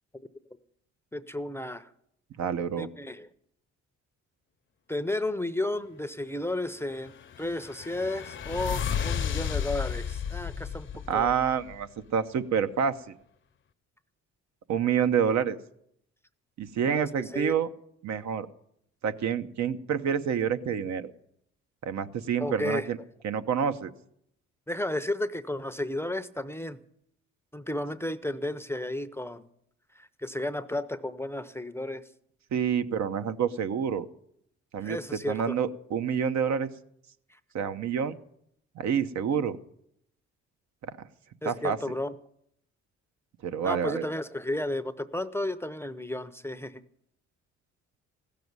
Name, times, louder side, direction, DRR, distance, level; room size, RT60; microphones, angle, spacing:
voice 1, 1.1-1.9 2.8-3.3 4.9-11.3 16.9-17.5 22.4-22.9 24.7-26.8 27.5-29.4 30.0-32.0 34.8-35.6 37.3-37.4 41.4-42.2 43.6-46.8, left 1 dB, 10° left, 11 dB, 0.6 m, -33 dB
voice 2, 2.4-2.9 11.1-13.1 14.7-15.6 16.6-17.7 18.0-18.5 19.0-21.1 21.8-23.0 23.2-23.9 32.5-34.1 34.7-35.0 35.3-36.7 37.5-38.1 38.8-39.6 40.8-40.9 41.4-41.8 43.4-44.1, right 7 dB, 65° right, 10 dB, 0.9 m, -28 dB
sound 1, 6.9-11.9, left 8 dB, 40° left, 0.7 m, -33 dB
15.5 x 6.8 x 9.5 m, 0.73 s
cardioid pair, 90°, 30 cm